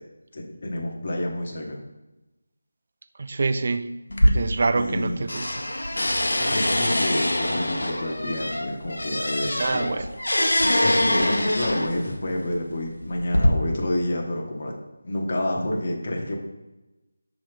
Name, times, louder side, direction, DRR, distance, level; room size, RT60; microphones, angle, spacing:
voice 1, 0.3-1.8 4.7-5.2 6.4-9.9 10.8-14.7 15.0-16.4, left 1 dB, 35° left, -1 dB, 1.0 m, -28 dB
voice 2, 3.2-3.9 4.3-5.6 9.6-10.1, right 3 dB, 40° right, 9 dB, 0.3 m, -26 dB
sound 1, 4.1-5.0 5.3-12.1 12.9-13.5, left 1 dB, 85° left, 0.9 m, -24 dB
6.2 x 3.1 x 5.0 m, 1.0 s
figure-of-eight pair, 175°, 0 cm